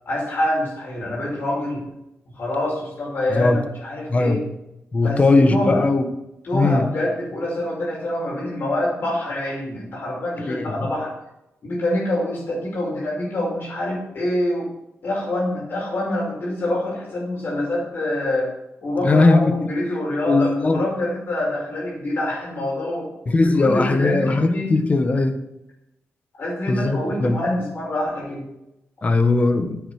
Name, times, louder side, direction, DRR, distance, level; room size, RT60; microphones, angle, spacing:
voice 1, 0.1-1.8 2.3-4.4 5.0-5.8 6.4-11.1 11.6-14.7 15.0-18.5 18.8-23.1 23.4-24.7 26.4-28.4, left 1 dB, 55° left, -4 dB, 5.5 m, -25 dB
voice 2, 3.3-3.7 4.1-4.4 4.9-6.0 6.5-6.9 10.5-10.9 19.0-19.7 20.3-20.8 23.3-25.4 26.7-27.4 29.0-29.8, left 3 dB, 30° left, 8 dB, 1.4 m, -19 dB
10.0 x 8.9 x 6.5 m, 0.87 s
wide cardioid pair, 145°, 4 cm